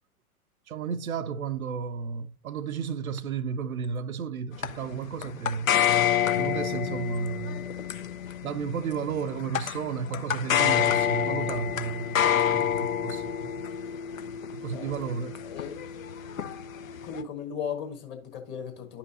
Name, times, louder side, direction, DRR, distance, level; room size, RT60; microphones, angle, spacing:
voice 1, 0.7-5.7 6.4-7.7 8.4-13.6 14.5-15.4, right 6 dB, 70° right, 0.6 m, -33 dB
sound 1, 4.6-17.2, left 9 dB, 65° left, 0.7 m, -28 dB
voice 2, 15.4-15.7 17.0-19.0, left 7 dB, 25° left, 1.5 m, -36 dB
10.5 x 5.5 x 2.6 m
figure-of-eight pair, 110°, 45 cm